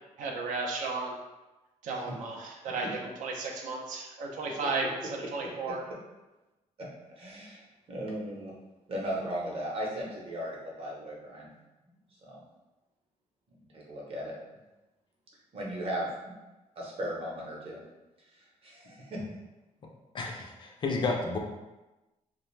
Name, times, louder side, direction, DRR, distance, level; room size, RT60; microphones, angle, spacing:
voice 1, 0.2-1.1 1.9-2.3 2.6-2.9 3.2-4.9 5.3-5.8, right 3 dB, 85° right, 0 dB, 0.5 m, -33 dB
voice 2, 5.4-5.7 6.8-6.9 7.2-8.5 8.9-11.5 12.2-12.4 13.7-14.3 15.5-16.3 16.8-17.8 18.2-19.2, right 1 dB, 50° right, -3 dB, 0.7 m, -37 dB
voice 3, 20.1-21.4, left 3 dB, 40° left, 1 dB, 0.4 m, -31 dB
2.4 x 2.1 x 3.1 m, 1.1 s
cardioid pair, 120°, 13 cm